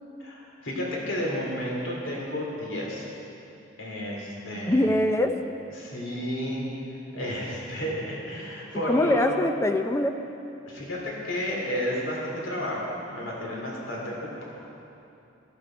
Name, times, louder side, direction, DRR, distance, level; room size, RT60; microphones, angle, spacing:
voice 1, 0.2-3.1 3.8-4.9 5.8-6.6 7.1-9.2 10.7-14.4, equal, 85° left, -3 dB, 2.8 m, -32 dB
voice 2, 4.7-5.3 8.9-10.1, left 1 dB, 15° left, 7 dB, 0.6 m, -23 dB
15.0 x 13.0 x 4.5 m, 2.8 s
head